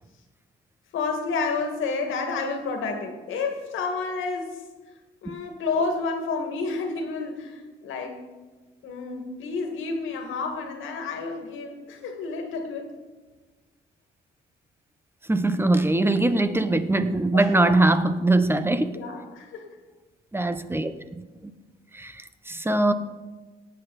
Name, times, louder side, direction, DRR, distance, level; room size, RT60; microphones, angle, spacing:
voice 1, 0.9-4.6 5.2-8.3 8.8-12.9 17.3-17.9 18.9-19.7, left 4 dB, 80° left, 4 dB, 2.1 m, -30 dB
voice 2, 15.3-19.0 20.3-20.9 21.9-22.1 22.5-22.9, right 2 dB, 10° right, 10 dB, 0.8 m, -21 dB
18.0 x 8.1 x 4.2 m, 1.3 s
cardioid pair, 90°, 20 cm